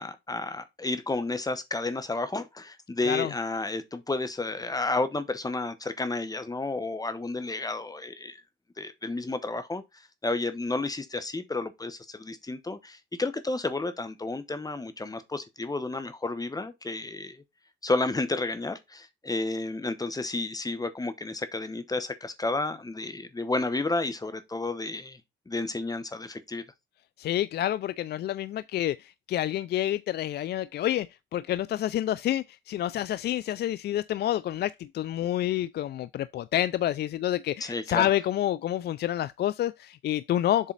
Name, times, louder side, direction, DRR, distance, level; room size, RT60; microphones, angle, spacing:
voice 1, 0.0-8.4 8.8-9.8 10.2-17.4 17.8-25.2 25.5-26.6 37.6-38.1, left 2 dB, 20° left, 1.1 m, -31 dB
voice 2, 27.2-40.7, left 12 dB, 55° left, 0.4 m, -28 dB
7.4 x 4.1 x 4.0 m
cardioid pair, 90°, 20 cm